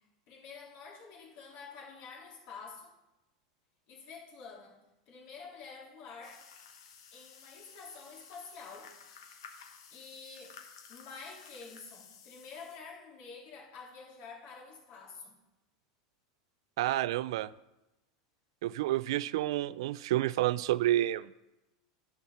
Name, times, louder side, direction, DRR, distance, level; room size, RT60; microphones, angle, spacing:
voice 1, 0.3-2.9 3.9-4.8 5.1-6.4 7.1-8.9 9.9-10.6 10.9-15.4, left 5 dB, 55° left, -2 dB, 2.6 m, -48 dB
sound 1, 6.2-12.8, left 6 dB, 85° left, 1.2 m, -54 dB
voice 2, 16.8-17.5 18.6-21.3, right 14 dB, 75° right, 18 dB, 0.3 m, -29 dB
10.5 x 4.5 x 5.6 m, 0.98 s
supercardioid pair, 140°, 3 cm